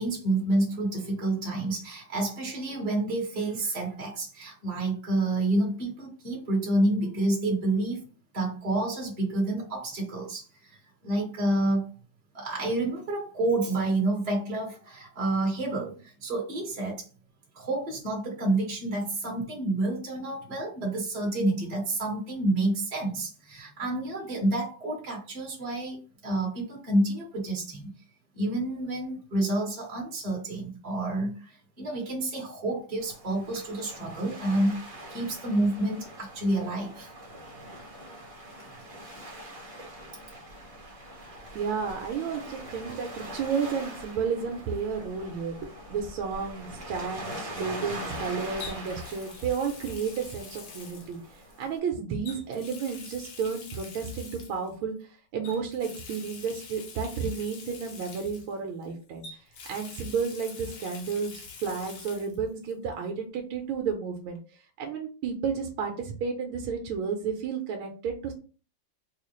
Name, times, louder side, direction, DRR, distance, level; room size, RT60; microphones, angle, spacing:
voice 1, 0.0-8.0 8.3-11.9 12.3-17.1 17.5-26.0 26.2-27.9 28.3-34.8 35.1-37.1, right 2 dB, 20° right, -2 dB, 1.4 m, -29 dB
Waves surf, 33.0-51.8, right 1 dB, 45° right, 0.4 m, -43 dB
voice 2, 41.5-59.2 59.7-64.4 64.8-68.3, right 6 dB, 75° right, 1 dB, 1.4 m, -32 dB
Water tap faucet, 45.6-45.9 48.6-51.6 52.2-54.7 55.4-58.9 59.2-62.4 62.7-62.8 64.3-64.4, left 5 dB, 60° left, 1.1 m, -46 dB
4.1 x 2.4 x 3.1 m, 0.36 s
omnidirectional pair, 2.4 m